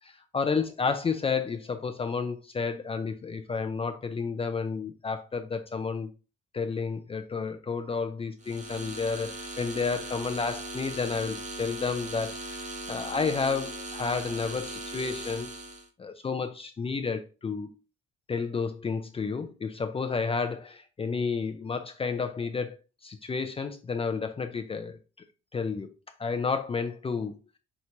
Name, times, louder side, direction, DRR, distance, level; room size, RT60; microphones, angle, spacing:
voice 1, 0.0-6.1 6.5-15.5 16.0-17.7 18.3-22.8 23.0-25.0 25.5-25.9 26.2-27.3, left 5 dB, 30° left, 0.5 m, -31 dB
sound 1, 8.4-15.9, right 1 dB, 35° right, 1.1 m, -39 dB
5.9 x 3.1 x 2.7 m
cardioid pair, 90°, 20 cm